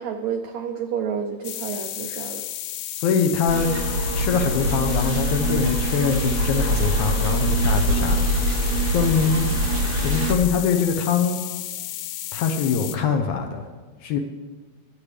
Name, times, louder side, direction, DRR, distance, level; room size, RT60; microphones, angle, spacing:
voice 1, 0.0-2.4, right 7 dB, 85° right, 5 dB, 1.6 m, -29 dB
sound 1, 1.4-13.0, left 13 dB, 85° left, 2.3 m, -33 dB
voice 2, 3.0-3.7 4.2-9.5 10.0-11.4 12.3-13.6 14.0-14.2, left 6 dB, 70° left, 5 dB, 2.0 m, -23 dB
sound 2, 3.5-10.3, right 1 dB, 60° right, 2.6 m, -23 dB
21.0 x 8.6 x 3.3 m, 1.4 s
omnidirectional pair, 4.0 m